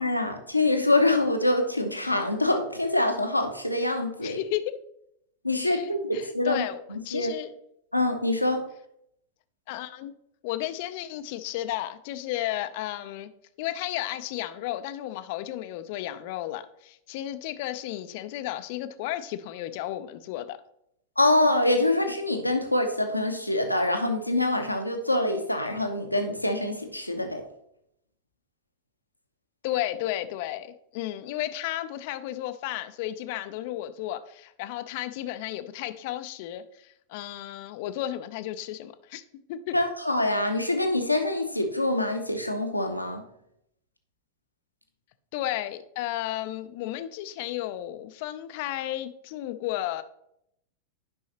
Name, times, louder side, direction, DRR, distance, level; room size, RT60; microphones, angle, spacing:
voice 1, 0.0-4.4 5.4-6.6 6.9-7.3 7.9-8.7 21.2-27.4 39.7-43.2, left 2 dB, 85° left, 5 dB, 0.8 m, -25 dB
voice 2, 4.2-4.7 5.6-5.9 6.1-7.5 9.7-10.1 10.4-13.3 13.6-20.6 29.6-39.2 39.5-39.8 45.3-50.0, left 13 dB, 50° left, 12 dB, 0.5 m, -33 dB
9.8 x 5.5 x 2.9 m, 0.76 s
figure-of-eight pair, 90°, 0 cm